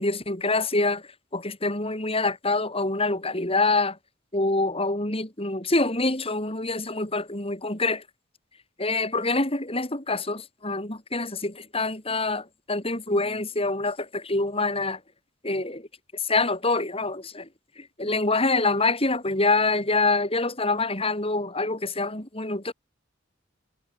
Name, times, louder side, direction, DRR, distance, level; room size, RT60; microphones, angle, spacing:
voice 1, 0.0-4.0 4.3-8.0 8.8-15.0 15.4-15.9 16.1-17.5 17.8-22.7, left 3 dB, 30° left, 7.0 m, -26 dB
head